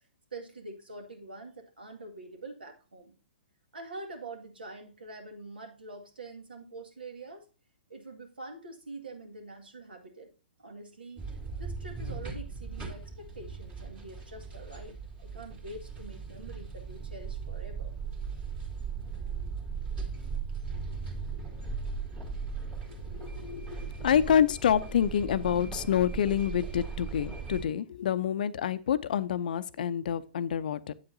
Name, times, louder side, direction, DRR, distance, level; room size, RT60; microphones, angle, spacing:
voice 1, 0.3-3.2 3.7-7.5 7.9-10.3 10.6-11.2 11.6-18.0, right 2 dB, 75° right, 1.8 m, -45 dB
sound 1, 11.2-27.7, right 5 dB, 20° right, 2.3 m, -38 dB
voice 2, 23.1-30.9, left 9 dB, 60° left, 0.5 m, -27 dB
8.5 x 7.8 x 2.6 m
figure-of-eight pair, 115°, 5 cm